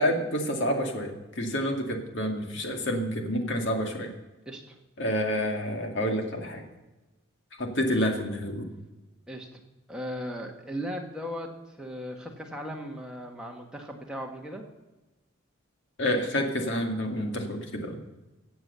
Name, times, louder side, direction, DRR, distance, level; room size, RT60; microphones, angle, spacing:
voice 1, 0.0-4.1 5.0-6.6 7.6-8.7 16.0-18.0, equal, 55° left, 3 dB, 2.1 m, -28 dB
voice 2, 4.5-4.8 9.3-9.6 9.9-14.6, equal, 5° right, 0 dB, 1.6 m, -37 dB
16.0 x 7.9 x 6.9 m, 1.1 s
head